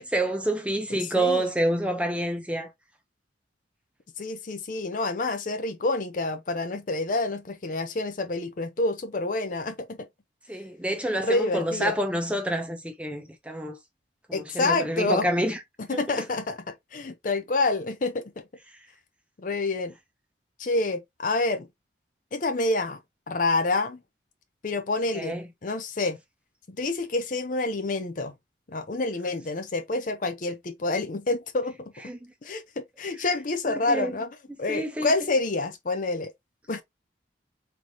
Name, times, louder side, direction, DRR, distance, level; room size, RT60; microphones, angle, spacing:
voice 1, 0.0-2.7 10.5-13.8 14.3-15.6 15.9-16.3 25.1-25.4 32.1-32.2 33.6-34.1 34.7-35.1, right 1 dB, 5° right, 0.8 m, -28 dB
voice 2, 0.9-1.5 4.2-10.0 11.2-12.0 14.3-15.3 15.9-18.2 19.4-19.9 20.6-21.7 22.3-23.0 23.3-24.0 24.6-26.2 26.7-28.3 28.7-31.8 32.4-34.3 34.6-36.3 36.7-36.8, left 2 dB, 45° left, 0.5 m, -28 dB
3.9 x 3.3 x 2.8 m
head